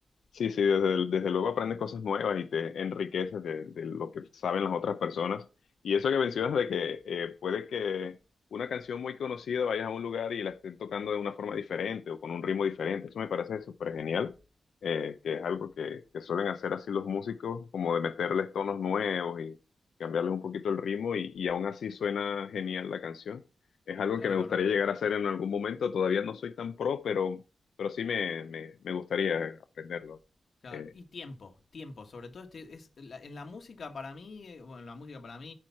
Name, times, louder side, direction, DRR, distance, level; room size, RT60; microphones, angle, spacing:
voice 1, 0.3-5.4 5.8-8.1 8.5-14.3 14.8-19.6 20.0-23.4 23.9-27.4 27.8-30.2 30.7-30.9, left 7 dB, 85° left, 0.7 m, -31 dB
voice 2, 24.2-24.6 30.6-35.5, left 4 dB, 55° left, 1.4 m, -45 dB
8.9 x 4.8 x 5.7 m
wide cardioid pair, 120°, 0 cm